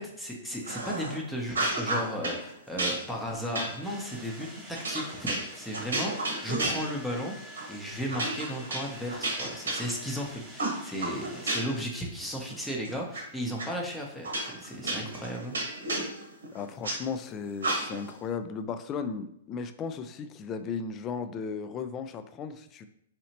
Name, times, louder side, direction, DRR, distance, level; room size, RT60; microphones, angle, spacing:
voice 1, 0.0-15.5, equal, 5° left, -1 dB, 0.7 m, -35 dB
sound 1, 0.6-1.2 1.5-2.4 2.8-7.2 7.6-7.7 8.1-10.2 10.6-11.9 12.2-13.2 13.6-13.7 14.2-17.0 17.6-18.1, right 2 dB, 90° right, 1.1 m, -32 dB
sound 2, 3.8-11.6, equal, 10° right, 1.0 m, -48 dB
voice 2, 16.5-22.9, left 5 dB, 25° left, 9 dB, 0.3 m, -36 dB
4.0 x 2.8 x 2.9 m, 0.75 s
hypercardioid pair, 130°, 0 cm